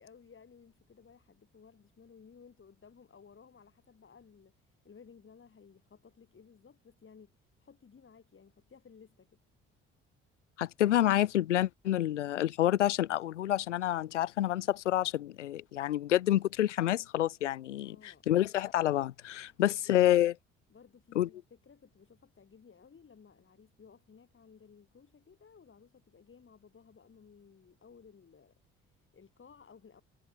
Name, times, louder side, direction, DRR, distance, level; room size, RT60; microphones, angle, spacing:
voice 1, 0.0-9.3 17.8-18.2 19.4-20.2 20.7-30.0, left 6 dB, 35° left, 7.5 m, -58 dB
voice 2, 10.6-20.3 21.2-21.3, left 13 dB, 80° left, 0.5 m, -28 dB
figure-of-eight pair, 50°, 36 cm